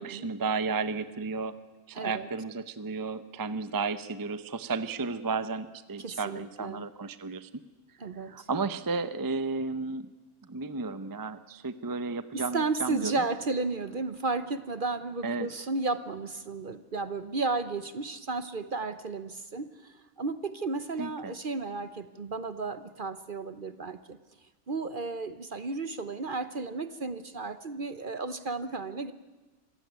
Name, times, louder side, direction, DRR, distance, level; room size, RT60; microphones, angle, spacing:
voice 1, 0.0-1.5 1.9-7.5 8.3-10.1 10.5-13.1 15.2-15.5 21.0-21.3, right 4 dB, 20° right, 13 dB, 0.6 m, -33 dB
voice 2, 1.9-2.3 6.0-6.8 8.0-8.5 12.3-24.2 24.7-29.1, right 3 dB, 45° right, 13 dB, 0.9 m, -33 dB
26.0 x 16.0 x 9.4 m, 1.2 s
omnidirectional pair, 1.5 m